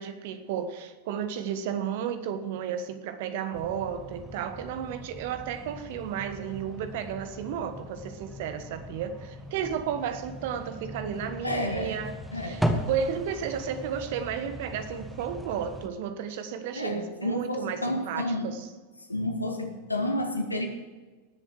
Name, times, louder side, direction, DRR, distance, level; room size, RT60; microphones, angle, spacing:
voice 1, 0.0-12.1 12.4-12.6 12.9-18.6, right 8 dB, 50° right, 10 dB, 1.3 m, -33 dB
sound 1, 3.5-15.9, equal, 5° right, 1.4 m, -38 dB
voice 2, 11.4-12.0 12.3-12.6 16.8-18.5 19.1-20.7, left 1 dB, 85° left, 4 dB, 1.9 m, -30 dB
19.5 x 7.4 x 4.7 m, 1.3 s
figure-of-eight pair, 90°, 0 cm